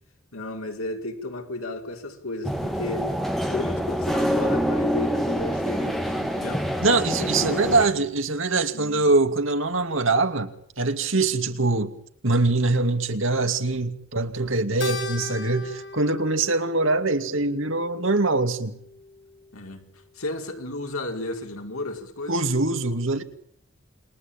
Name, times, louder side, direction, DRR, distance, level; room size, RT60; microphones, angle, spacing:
voice 1, 0.3-3.1 3.5-6.7 7.2-8.0 8.7-9.3 19.5-19.9 20.1-22.4, left 2 dB, 85° left, 5.3 m, -34 dB
Dark background ambience, 2.4-7.9, equal, ahead, 2.8 m, -26 dB
voice 2, 6.8-10.5 10.8-11.9 12.2-18.8 22.3-23.2, right 3 dB, 70° right, 2.6 m, -23 dB
Keyboard (musical), 14.8-19.4, left 4 dB, 55° left, 5.8 m, -38 dB
28.5 x 21.5 x 9.0 m
head